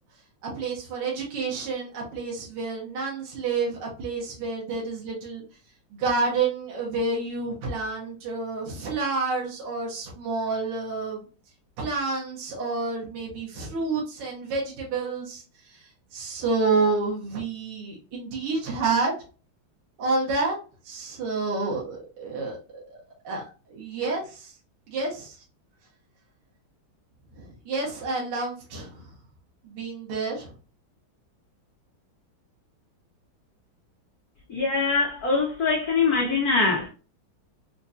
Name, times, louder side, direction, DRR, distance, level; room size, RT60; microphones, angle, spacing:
voice 1, 0.4-5.4 5.9-11.2 11.8-19.1 20.0-20.6 20.9-22.6 23.2-23.4 23.7-24.5 24.9-25.4 27.4-29.0 29.6-30.5, right 3 dB, 80° right, 1.9 m, -29 dB
voice 2, 34.5-36.9, left 4 dB, 65° left, 0.9 m, -23 dB
4.4 x 2.6 x 2.3 m
omnidirectional pair, 2.4 m